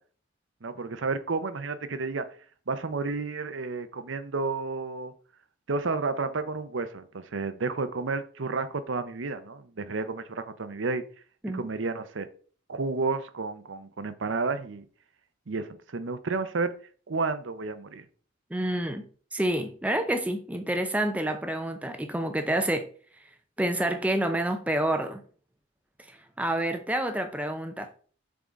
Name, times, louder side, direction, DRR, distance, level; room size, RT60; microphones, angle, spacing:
voice 1, 0.6-2.2 2.7-5.1 5.7-11.0 11.5-12.3 12.7-14.8 15.5-16.7 17.1-18.0, right 3 dB, 70° right, 0.7 m, -31 dB
voice 2, 18.5-19.1 19.3-22.9 23.6-25.2 26.4-27.9, right 1 dB, 5° right, 0.5 m, -28 dB
6.9 x 3.8 x 3.8 m
head